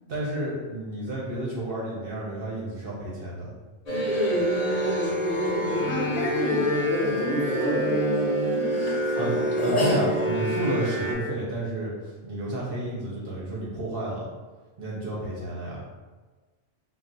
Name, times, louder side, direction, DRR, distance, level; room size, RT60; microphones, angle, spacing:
voice 1, 0.1-3.5 9.1-9.3 9.6-14.2 14.8-15.8, right 1 dB, 55° right, -5 dB, 0.7 m, -31 dB
sound 1, 3.9-11.1, equal, 45° left, 0.5 m, -25 dB
voice 2, 5.6-9.5 10.0-10.3, left 1 dB, 80° left, 0 dB, 1.0 m, -32 dB
2.4 x 2.1 x 3.8 m, 1.3 s
omnidirectional pair, 1.4 m